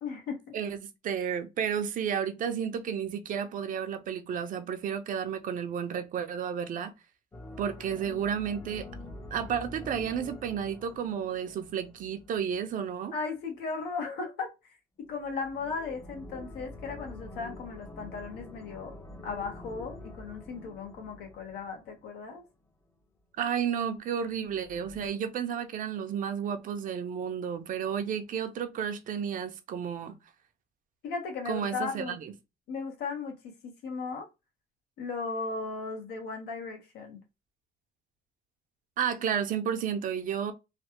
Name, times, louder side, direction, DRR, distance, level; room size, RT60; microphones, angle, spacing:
voice 1, 0.0-0.5 13.1-14.5 15.1-18.9 19.2-22.4 31.0-32.2 32.7-33.3 33.6-34.3 35.0-37.2, left 4 dB, 80° left, 1.3 m, -36 dB
voice 2, 0.5-6.9 7.6-8.9 9.3-13.1 23.4-30.1 31.5-32.3 39.0-40.5, right 8 dB, 55° right, 0.6 m, -32 dB
sound 1, 7.3-12.7 15.0-22.4 24.3-25.1, left 2 dB, 15° left, 0.6 m, -46 dB
3.2 x 2.2 x 2.9 m
cardioid pair, 110°, 17 cm